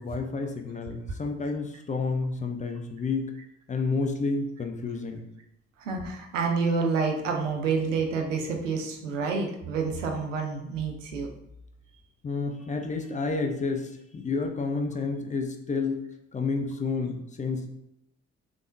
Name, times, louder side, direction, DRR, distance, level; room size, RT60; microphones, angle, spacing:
voice 1, 0.0-3.3 3.7-5.2 12.2-16.0 16.3-17.7, left 4 dB, 20° left, 4 dB, 0.5 m, -30 dB
voice 2, 5.8-11.3, right 4 dB, 80° right, 2 dB, 0.6 m, -28 dB
3.4 x 3.2 x 2.6 m, 0.79 s
figure-of-eight pair, 45°, 37 cm